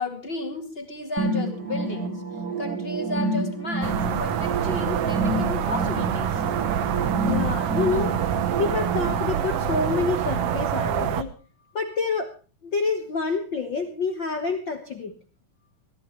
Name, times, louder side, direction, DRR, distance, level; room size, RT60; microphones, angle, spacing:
voice 1, 0.0-2.2 2.6-6.4, left 2 dB, 20° left, 4 dB, 2.0 m, -33 dB
sound 1, 1.2-9.2, right 2 dB, 30° right, 2.7 m, -29 dB
sound 2, 3.8-11.2, right 9 dB, 85° right, 1.3 m, -26 dB
voice 2, 7.2-8.2 8.6-11.3 11.7-12.3 12.6-15.1, left 4 dB, 65° left, 6 dB, 1.1 m, -27 dB
22.5 x 15.0 x 3.1 m, 0.35 s
omnidirectional pair, 4.2 m